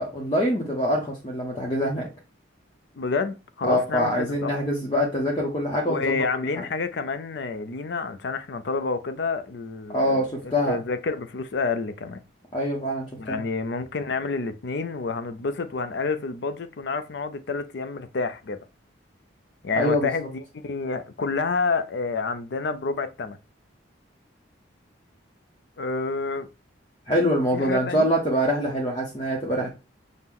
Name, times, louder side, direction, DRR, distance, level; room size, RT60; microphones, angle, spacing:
voice 1, 0.0-2.1 3.6-6.2 6.6-6.7 9.9-10.8 12.5-13.4 19.8-20.1 27.1-29.7, equal, 25° left, 0.7 m, -24 dB
voice 2, 2.9-4.5 5.9-12.2 13.2-18.6 19.6-23.4 25.8-26.5 27.5-28.1, left 4 dB, 60° left, 0.4 m, -29 dB
5.9 x 2.1 x 3.6 m
head